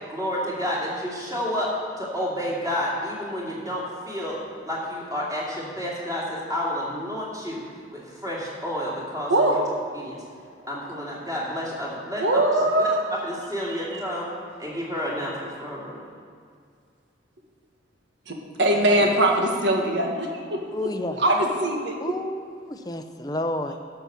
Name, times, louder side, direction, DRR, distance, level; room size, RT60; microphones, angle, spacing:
voice 1, 0.1-1.7 2.0-7.6 7.9-9.6 9.9-10.2 10.7-12.4 12.8-12.9 13.2-14.3 14.6-16.1, equal, 20° right, -5 dB, 2.4 m, -30 dB
voice 2, 12.2-13.1 13.6-14.0 18.3-20.6 21.2-22.0, right 1 dB, 75° right, 1 dB, 1.5 m, -22 dB
voice 3, 20.7-21.2 22.0-23.8, left 1 dB, 20° left, 7 dB, 0.6 m, -30 dB
12.0 x 5.8 x 6.8 m, 2.1 s
head